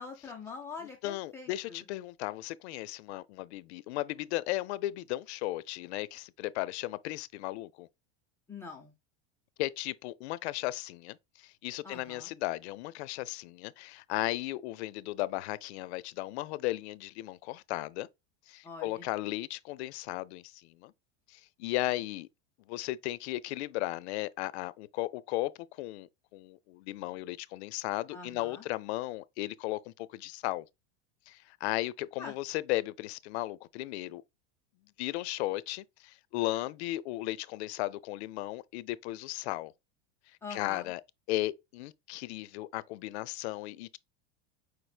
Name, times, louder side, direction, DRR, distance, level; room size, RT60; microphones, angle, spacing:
voice 1, 0.0-1.9 8.5-8.9 11.8-12.3 18.6-19.1 28.1-28.6 32.2-32.4 40.4-40.9, left 4 dB, 10° left, 0.4 m, -44 dB
voice 2, 1.0-7.9 9.6-18.1 18.5-20.9 21.3-22.3 22.7-25.5 25.8-30.7 31.3-34.2 35.0-39.7 40.5-41.0 41.3-44.0, left 17 dB, 70° left, 0.5 m, -35 dB
5.0 x 4.6 x 2.3 m
supercardioid pair, 160°, 34 cm